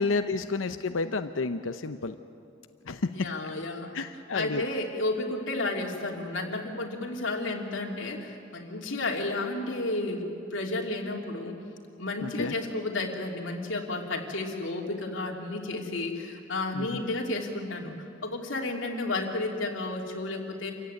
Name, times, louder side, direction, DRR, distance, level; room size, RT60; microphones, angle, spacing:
voice 1, 0.0-2.2 2.9-3.3 3.9-4.6 12.2-12.5 16.7-17.0, left 3 dB, 90° left, 9 dB, 0.7 m, -30 dB
voice 2, 3.1-3.9 4.3-11.6 12.0-17.9 18.2-20.7, left 2 dB, 70° left, 0 dB, 2.9 m, -32 dB
27.5 x 15.5 x 9.5 m, 2.6 s
head